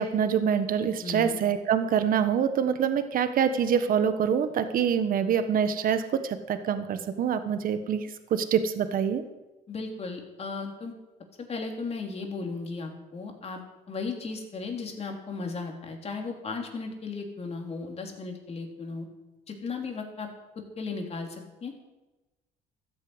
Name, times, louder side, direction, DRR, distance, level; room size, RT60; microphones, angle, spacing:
voice 1, 0.0-9.2, right 8 dB, 55° right, 10 dB, 1.4 m, -25 dB
voice 2, 1.0-1.4 9.7-10.9 11.4-13.6 13.9-19.1 19.5-20.3 20.5-21.7, left 4 dB, 40° left, 2 dB, 3.2 m, -36 dB
13.5 x 9.7 x 8.0 m, 1.1 s
cardioid pair, 110°, 17 cm